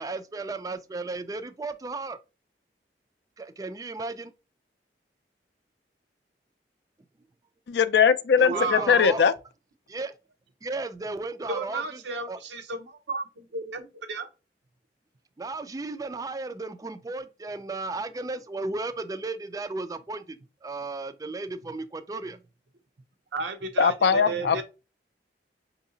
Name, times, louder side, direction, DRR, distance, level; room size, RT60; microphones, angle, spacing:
voice 1, 0.0-2.2 3.4-4.3 8.4-9.2 9.9-10.1 10.6-12.0 12.3-12.4 15.4-22.4, right 3 dB, 20° right, 0.3 m, -34 dB
voice 2, 7.7-9.3 23.8-24.6, left 6 dB, 70° left, 0.4 m, -20 dB
voice 3, 8.5-8.9 11.5-14.3 23.3-24.6, right 3 dB, 90° right, 0.8 m, -33 dB
5.6 x 2.7 x 2.7 m
head